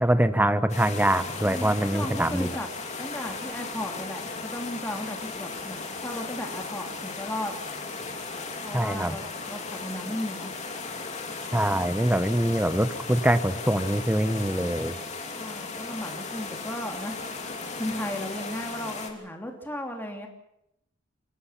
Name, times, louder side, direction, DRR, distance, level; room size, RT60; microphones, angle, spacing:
voice 1, 0.0-2.5 8.7-9.2 11.5-14.9, right 1 dB, 10° right, 12 dB, 1.0 m, -24 dB
sound 1, 0.7-19.1, left 4 dB, 35° left, 3.0 m, -36 dB
voice 2, 1.4-2.7 3.0-7.5 8.6-10.5 15.4-17.2 17.8-20.3, left 1 dB, 10° left, 2 dB, 3.1 m, -35 dB
27.5 x 19.0 x 6.0 m, 0.80 s
head